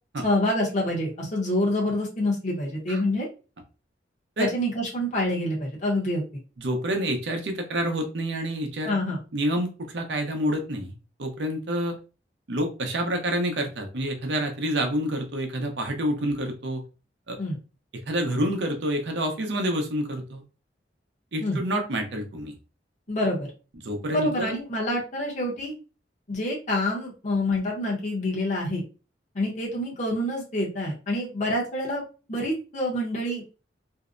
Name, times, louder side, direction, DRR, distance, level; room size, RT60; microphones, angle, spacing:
voice 1, 0.2-3.3 4.4-6.4 8.8-9.2 17.4-17.6 21.4-21.6 23.1-23.5 24.1-25.7 26.3-28.8 29.3-32.0 32.3-33.4, left 1 dB, 45° left, -3 dB, 0.8 m, -27 dB
voice 2, 6.6-8.9 9.3-10.9 11.2-12.0 12.5-16.8 17.3-17.4 18.1-20.4 21.3-22.5 23.8-24.5, equal, 75° right, 4 dB, 0.6 m, -28 dB
2.6 x 2.0 x 2.4 m, 0.33 s
head